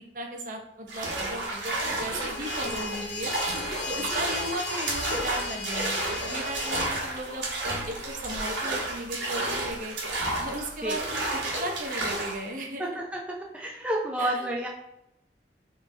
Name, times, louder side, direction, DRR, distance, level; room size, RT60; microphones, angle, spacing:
voice 1, 0.1-3.3 3.9-6.0 6.2-10.0 10.4-11.0 11.3-13.0 14.2-14.5, right 1 dB, 50° right, 2 dB, 0.8 m, -36 dB
sound 1, 0.9-12.4, right 2 dB, 85° right, 1.3 m, -31 dB
sound 2, 2.3-7.0, left 5 dB, 80° left, 0.6 m, -37 dB
voice 2, 12.8-13.2 13.5-14.7, right 1 dB, 5° right, -3 dB, 0.5 m, -30 dB
4.4 x 3.2 x 3.8 m, 0.83 s
head